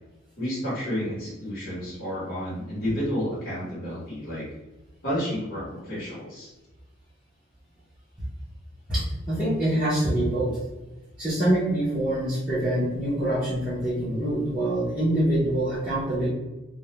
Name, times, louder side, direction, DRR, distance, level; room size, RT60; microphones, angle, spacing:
voice 1, 0.4-4.5 5.0-6.5, equal, 45° left, -10 dB, 0.9 m, -31 dB
voice 2, 8.9-10.6 11.2-16.3, right 1 dB, 5° right, -12 dB, 0.6 m, -25 dB
2.2 x 2.1 x 2.8 m, 1.1 s
head